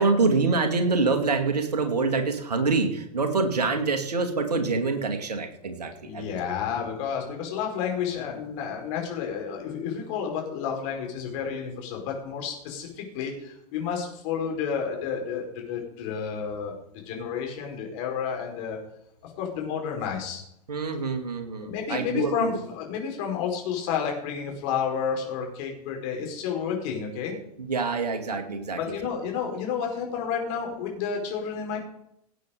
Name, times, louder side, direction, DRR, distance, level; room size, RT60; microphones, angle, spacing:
voice 1, 0.0-6.3 20.7-22.6 27.6-28.8, right 4 dB, 75° right, 5 dB, 2.6 m, -26 dB
voice 2, 6.0-18.8 19.2-20.4 21.6-27.4 28.7-31.8, left 7 dB, 50° left, 1 dB, 5.0 m, -31 dB
18.0 x 8.3 x 5.2 m, 0.75 s
figure-of-eight pair, 95°, 21 cm